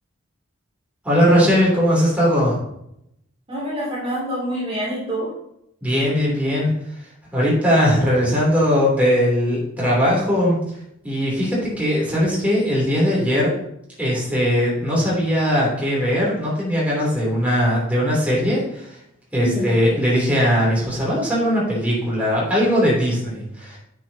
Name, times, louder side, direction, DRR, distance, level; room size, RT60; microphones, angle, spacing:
voice 1, 1.0-2.6 5.8-6.7 7.3-10.6 11.0-13.5 14.0-19.0 19.3-23.8, equal, 5° right, -6 dB, 3.1 m, -19 dB
voice 2, 3.5-5.3 19.4-19.7, equal, 30° right, -6 dB, 2.8 m, -26 dB
9.7 x 6.3 x 2.8 m, 0.79 s
head